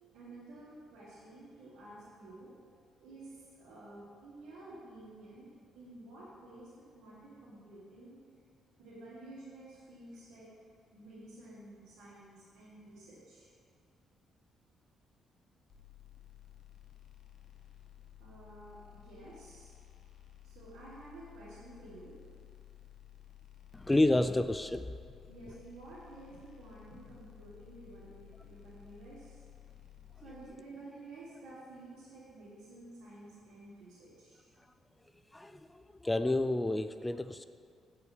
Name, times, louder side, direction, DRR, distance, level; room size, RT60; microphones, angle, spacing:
voice 1, 0.1-2.5 3.0-6.7 6.9-8.2 8.8-10.5 10.9-13.5 18.2-19.7 20.4-22.2 25.3-29.4 30.2-34.5, right 2 dB, 85° right, -11 dB, 2.0 m, -51 dB
sound 1, 15.7-30.5, left 12 dB, 70° left, 0.9 m, -55 dB
voice 2, 23.7-25.0 35.3-37.4, left 2 dB, 10° left, 11 dB, 0.3 m, -30 dB
8.4 x 5.4 x 4.5 m, 2.2 s
cardioid pair, 90°, 0 cm